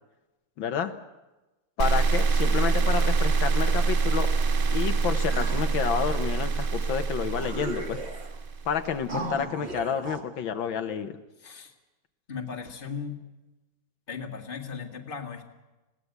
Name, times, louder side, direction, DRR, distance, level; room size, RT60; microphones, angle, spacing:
voice 1, 0.6-0.9 1.8-4.3 4.7-8.0 8.7-11.2, left 7 dB, 85° left, 8 dB, 1.8 m, -29 dB
sound 1, 1.8-8.9, right 4 dB, 60° right, 0.5 m, -25 dB
sound 2, 5.3-6.2 6.9-7.0 7.2-8.4 9.1-10.2, right 3 dB, 35° right, 1.8 m, -37 dB
voice 2, 9.0-9.5 11.4-11.7 12.3-13.2 14.1-15.5, left 5 dB, 30° left, 3 dB, 1.8 m, -37 dB
21.0 x 17.0 x 8.2 m, 1.1 s
omnidirectional pair, 2.1 m